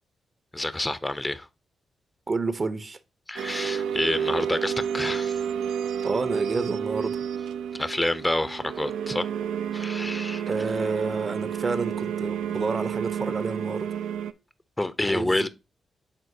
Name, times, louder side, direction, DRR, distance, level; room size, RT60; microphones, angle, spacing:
voice 1, 0.5-1.5 3.3-5.4 7.7-9.3 9.7-10.4 14.8-15.5, left 1 dB, 20° left, 0.6 m, -28 dB
voice 2, 2.3-3.0 6.0-7.2 10.5-13.9 15.0-15.5, right 3 dB, 45° right, 0.7 m, -29 dB
sound 1, 3.4-14.3, right 8 dB, 80° right, 0.3 m, -30 dB
9.7 x 3.7 x 2.7 m
hypercardioid pair, 45°, 0 cm